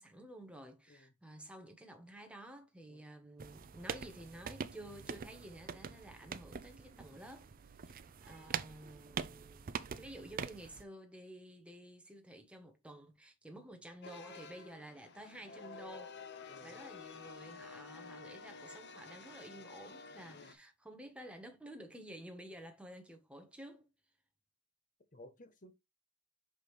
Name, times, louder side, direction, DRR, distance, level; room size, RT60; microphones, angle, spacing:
voice 1, 0.0-7.5 7.9-23.9, right 1 dB, 5° right, 1.2 m, -52 dB
sound 1, 3.4-10.8, right 6 dB, 45° right, 0.5 m, -44 dB
sound 2, 14.0-20.5, left 4 dB, 55° left, 0.8 m, -51 dB
voice 2, 16.5-16.8 20.3-20.6 25.1-25.7, left 1 dB, 40° left, 1.1 m, -57 dB
6.1 x 5.3 x 3.3 m
head